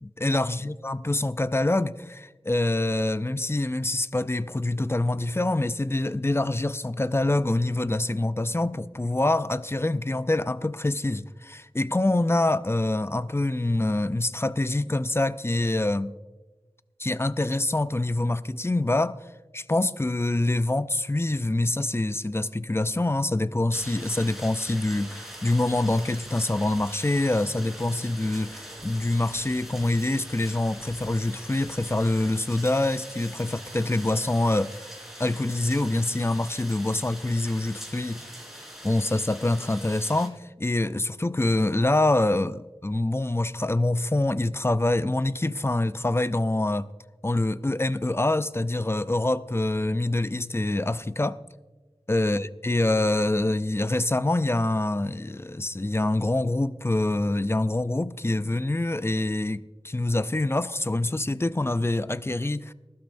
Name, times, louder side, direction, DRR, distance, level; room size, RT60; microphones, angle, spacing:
voice 1, 0.0-16.1 17.0-19.2 19.5-34.9 35.2-38.2 38.8-46.9 47.2-51.4 52.1-62.7, left 2 dB, 25° left, 0.4 m, -25 dB
sound 1, 23.7-40.3, equal, 5° right, 3.7 m, -43 dB
19.5 x 12.0 x 2.6 m
wide cardioid pair, 45°, 11 cm